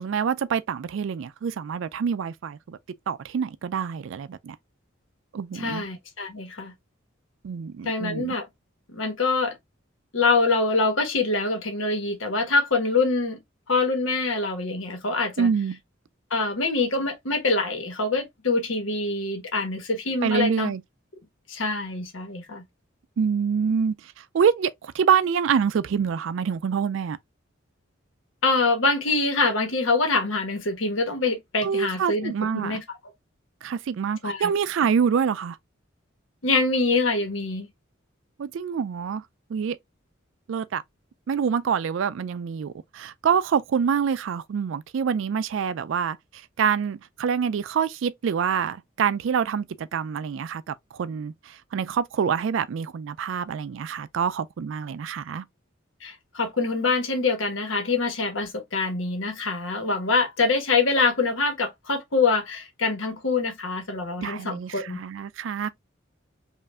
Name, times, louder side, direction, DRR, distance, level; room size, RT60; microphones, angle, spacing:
voice 1, 0.0-2.8 3.1-4.6 5.3-5.9 7.4-8.4 15.4-15.8 20.2-20.8 23.2-27.2 31.6-32.8 33.6-35.6 38.4-39.2 39.5-39.8 40.5-40.8 41.3-55.5 64.2-65.7, right 7 dB, 75° right, 0.3 m, -26 dB
voice 2, 5.5-6.7 7.8-8.4 8.9-9.6 10.1-13.4 13.7-15.5 16.3-20.7 21.5-22.6 28.4-32.3 32.6-32.8 34.2-34.5 36.4-37.7 56.0-65.0, left 3 dB, 80° left, 1.2 m, -25 dB
5.3 x 2.5 x 2.3 m
head